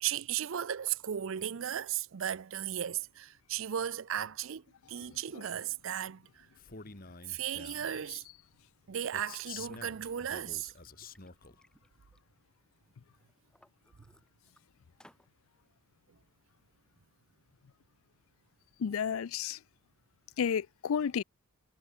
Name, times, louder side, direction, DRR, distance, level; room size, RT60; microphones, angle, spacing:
voice 1, 0.0-6.5 7.3-8.2 8.9-10.7, right 10 dB, 65° right, 0.5 m, -36 dB
Male speech man speaking, 6.6-7.9 9.1-11.6, left 5 dB, 45° left, 2.7 m, -48 dB
Liquid, 9.7-9.8 10.4-12.8 13.2-14.6 15.0-15.3, left 1 dB, 5° left, 6.5 m, -64 dB
voice 2, 18.8-19.6 20.4-21.2, left 7 dB, 75° left, 0.4 m, -31 dB
head